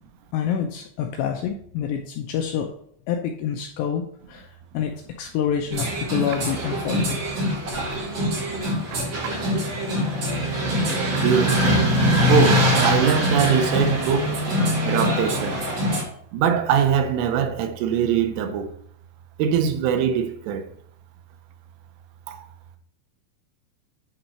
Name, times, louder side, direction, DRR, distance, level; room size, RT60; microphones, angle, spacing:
voice 1, 0.3-2.7 3.1-4.0 4.3-4.5 4.7-4.9 5.2-7.3, left 8 dB, 85° left, 2.5 m, -27 dB
sound 1, 5.7-16.0, equal, 50° right, 1.4 m, -23 dB
voice 2, 11.2-11.6 12.3-14.3 14.8-15.6 16.3-18.7 19.4-20.6 22.3-22.4, right 7 dB, 85° right, 3.4 m, -22 dB
9.6 x 3.9 x 4.3 m
omnidirectional pair, 5.5 m